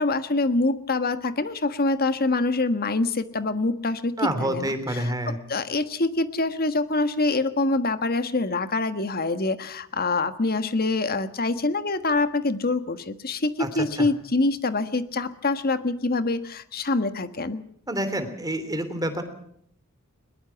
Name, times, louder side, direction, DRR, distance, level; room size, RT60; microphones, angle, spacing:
voice 1, 0.0-17.6, left 2 dB, 45° left, 11 dB, 1.5 m, -25 dB
voice 2, 4.2-5.4 13.6-13.7 14.0-14.1 17.9-19.2, right 1 dB, 15° right, 9 dB, 3.0 m, -27 dB
21.5 x 21.0 x 5.9 m, 0.68 s
head